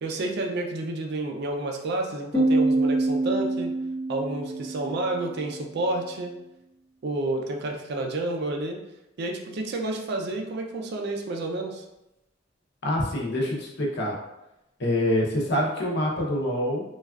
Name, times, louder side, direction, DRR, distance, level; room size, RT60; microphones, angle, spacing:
voice 1, 0.0-3.8 4.1-6.3 7.0-8.8 9.2-11.8, right 2 dB, 55° right, 2 dB, 0.4 m, -30 dB
Piano, 2.3-5.8, right 2 dB, 10° left, 0.4 m, -26 dB
voice 2, 12.8-14.2 14.8-16.8, left 1 dB, 60° left, -2 dB, 0.7 m, -25 dB
3.2 x 2.3 x 2.3 m, 0.90 s
head